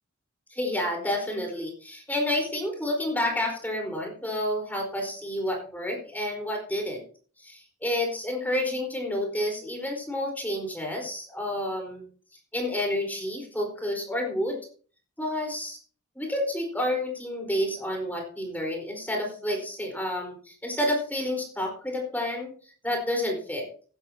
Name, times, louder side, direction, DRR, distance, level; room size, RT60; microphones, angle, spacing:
voice 1, 0.5-7.0 7.4-12.0 12.5-14.6 15.2-15.8 16.1-22.5 22.8-23.7, left 1 dB, 10° left, 1 dB, 4.5 m, -29 dB
14.5 x 12.5 x 2.9 m, 0.42 s
head